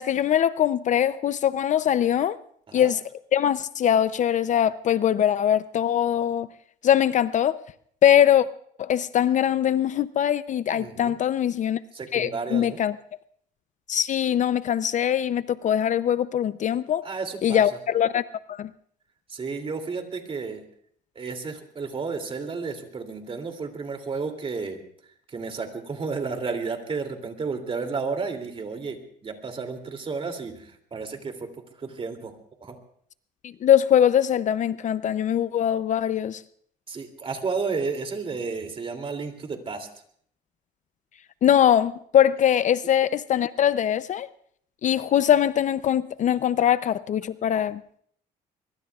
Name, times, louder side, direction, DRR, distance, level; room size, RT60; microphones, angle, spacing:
voice 1, 0.0-2.4 2.7-3.0 3.3-6.5 6.8-7.6 8.0-8.5 8.8-11.8 12.1-13.0 13.9-17.1 17.4-18.2 18.5-18.7 33.4-36.4 41.4-44.3 44.8-48.0, left 10 dB, 45° left, 0.5 m, -22 dB
voice 2, 10.7-11.2 11.9-12.8 17.0-17.8 19.3-20.6 21.1-24.8 25.3-31.5 31.8-32.3 32.6-32.8 36.9-39.9, right 4 dB, 35° right, 2.8 m, -32 dB
23.5 x 23.0 x 2.4 m
cardioid pair, 110°, 17 cm